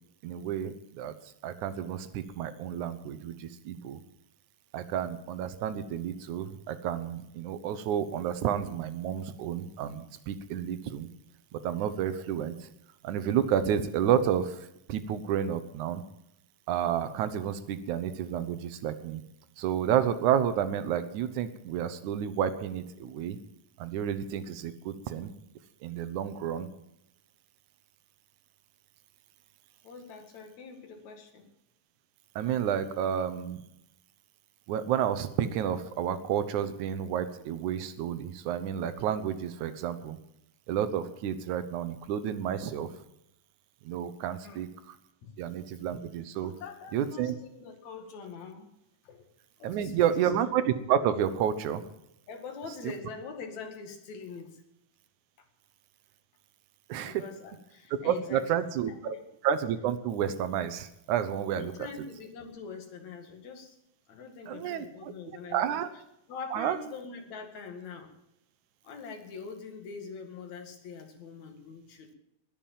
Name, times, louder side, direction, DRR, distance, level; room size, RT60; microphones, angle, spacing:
voice 1, 0.2-1.1 1.4-4.0 4.7-11.1 11.5-12.6 13.0-14.6 14.9-16.0 16.7-19.2 19.6-23.4 23.8-25.3 25.8-26.7 32.4-33.6 34.7-40.2 40.7-42.9 43.9-44.7 45.4-46.5 46.9-47.4 49.6-51.8 52.8-52.9 56.9-57.2 58.0-59.2 59.4-61.7 64.5-65.1 65.5-65.9 66.5-66.8, right 9 dB, 70° right, 12 dB, 2.3 m, -30 dB
voice 2, 29.8-31.5 44.4-44.7 45.2-45.7 46.4-48.7 49.0-49.3 49.6-50.3 52.3-54.6 55.4-55.5 57.0-58.7 59.0-59.2 61.5-63.8 64.1-66.0 66.3-68.1 68.8-72.1, left 5 dB, 60° left, 4 dB, 3.3 m, -44 dB
21.0 x 7.4 x 7.4 m, 0.81 s
omnidirectional pair, 3.7 m